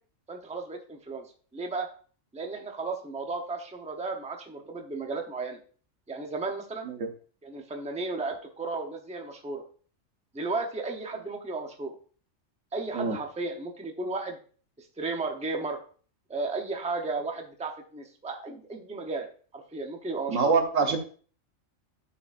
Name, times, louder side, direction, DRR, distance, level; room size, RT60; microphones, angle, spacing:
voice 1, 0.3-1.2 1.5-1.9 2.3-5.6 6.1-6.9 7.4-9.6 10.3-11.9 12.7-14.4 14.8-15.8 16.3-19.3 19.5-20.5, right 3 dB, 5° right, 3 dB, 0.7 m, -34 dB
voice 2, 20.3-21.0, right 4 dB, 75° right, 5 dB, 1.4 m, -25 dB
11.5 x 5.0 x 2.6 m, 0.41 s
omnidirectional pair, 1.4 m